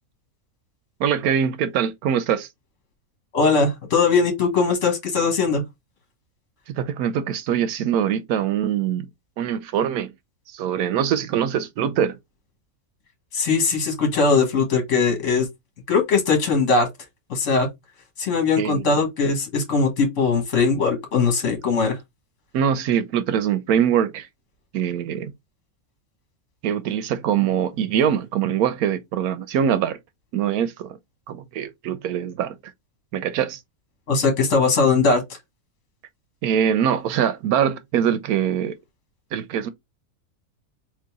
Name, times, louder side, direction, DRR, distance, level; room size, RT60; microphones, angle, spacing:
voice 1, 1.0-2.5 6.7-9.1 9.4-10.1 10.5-12.2 18.6-18.9 22.5-24.3 24.7-25.3 26.6-30.0 30.3-31.0 31.3-32.6 33.1-33.6 36.4-38.7 39.3-39.7, right 9 dB, 80° right, 1.1 m, -23 dB
voice 2, 3.3-5.6 13.3-15.5 15.9-16.9 17.3-17.7 18.2-22.0 34.1-35.4, left 4 dB, 55° left, 1.8 m, -20 dB
3.9 x 2.9 x 3.5 m
omnidirectional pair, 1.6 m